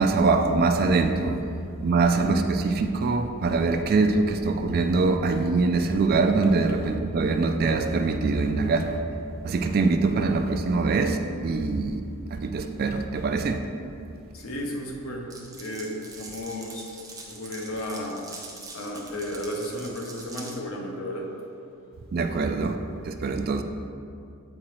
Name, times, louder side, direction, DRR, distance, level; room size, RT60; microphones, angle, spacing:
voice 1, 0.0-1.4 1.8-9.1 9.4-12.0 12.3-13.6 22.1-22.8 23.0-23.6, right 3 dB, 45° right, 6 dB, 0.3 m, -23 dB
voice 2, 14.3-16.9 17.3-18.3 18.7-21.4, equal, 65° left, 1 dB, 0.8 m, -33 dB
Glass, 15.3-20.5, right 3 dB, 15° right, 0.7 m, -43 dB
7.5 x 4.8 x 3.1 m, 2.5 s
head